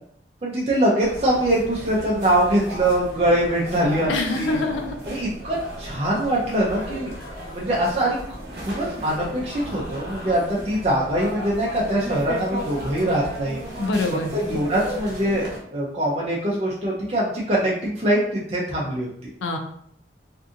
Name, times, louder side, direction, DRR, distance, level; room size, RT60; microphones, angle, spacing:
voice 1, 0.4-4.6 5.1-7.1 7.5-8.2 8.5-13.6 14.3-19.3, right 1 dB, 35° right, -5 dB, 0.4 m, -23 dB
sound 1, 1.0-15.6, equal, 55° right, 0.8 m, -35 dB
voice 2, 4.1-4.9 13.8-14.3 19.4-19.6, left 3 dB, 85° left, 4 dB, 0.4 m, -25 dB
2.6 x 2.4 x 2.5 m, 0.66 s
head